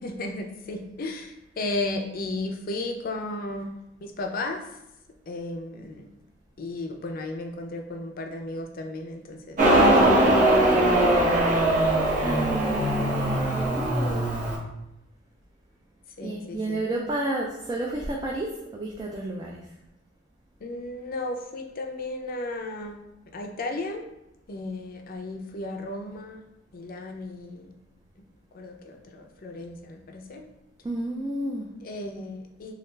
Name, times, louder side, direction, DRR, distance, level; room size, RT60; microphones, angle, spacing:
voice 1, 0.0-3.7 4.0-4.6 5.3-6.1 6.6-11.7 16.2-16.8 20.6-23.0 23.3-24.0 24.5-26.4 26.7-27.7 28.5-30.4 31.8-32.7, left 2 dB, 50° left, 4 dB, 0.4 m, -34 dB
Motorcycle, 9.6-14.6, right 1 dB, 40° right, 0.9 m, -21 dB
voice 2, 12.2-14.3 16.2-19.6 30.8-31.7, right 2 dB, 20° right, -2 dB, 0.3 m, -31 dB
3.2 x 2.4 x 3.1 m, 0.90 s
head